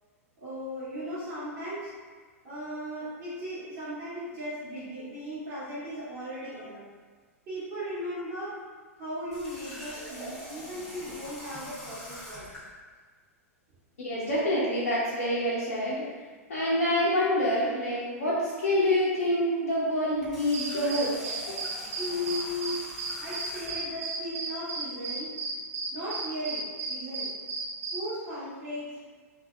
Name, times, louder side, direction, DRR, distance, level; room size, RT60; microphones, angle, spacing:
voice 1, 0.4-1.9 2.4-6.9 7.5-8.6 8.9-12.5 22.0-22.8 23.2-25.3 25.9-27.3 27.9-29.1, equal, 35° right, -12 dB, 1.4 m, -37 dB
Water tap faucet, 9.3-12.7 20.1-23.9, equal, 5° left, 1.2 m, -43 dB
voice 2, 14.0-16.1 16.5-21.3, left 1 dB, 75° left, -8 dB, 0.7 m, -27 dB
sound 1, 20.5-28.1, right 3 dB, 70° right, 0.4 m, -34 dB
2.6 x 2.6 x 2.4 m, 1.5 s
hypercardioid pair, 100°, 8 cm